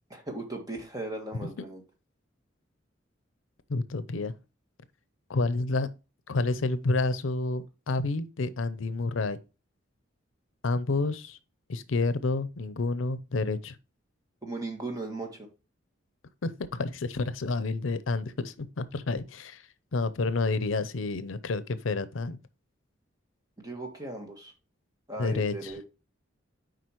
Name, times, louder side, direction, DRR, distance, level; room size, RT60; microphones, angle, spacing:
voice 1, 0.1-1.8 14.4-15.5 23.6-24.5 25.1-25.8, right 2 dB, 20° right, 1.6 m, -37 dB
voice 2, 3.7-4.3 5.3-5.9 6.3-9.4 10.6-11.4 11.7-13.8 16.4-19.6 19.9-22.4 25.2-25.7, left 3 dB, 80° left, 0.6 m, -29 dB
7.7 x 5.0 x 3.0 m
head